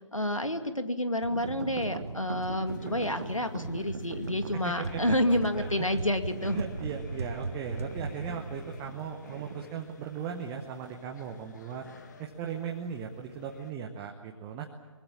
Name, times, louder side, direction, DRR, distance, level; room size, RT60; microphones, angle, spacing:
voice 1, 0.0-6.6, left 1 dB, 90° left, 8 dB, 2.4 m, -29 dB
sound 1, 1.2-9.9, right 3 dB, 60° right, 2.3 m, -40 dB
sound 2, 1.3-9.7, right 6 dB, 30° right, 1.4 m, -42 dB
sound 3, 2.7-13.7, left 4 dB, 35° left, 2.2 m, -52 dB
voice 2, 4.5-5.2 5.6-6.0 6.4-11.9 12.2-14.7, right 7 dB, 10° right, 3 dB, 0.9 m, -38 dB
23.5 x 21.0 x 8.8 m, 1.3 s
figure-of-eight pair, 150°, 16 cm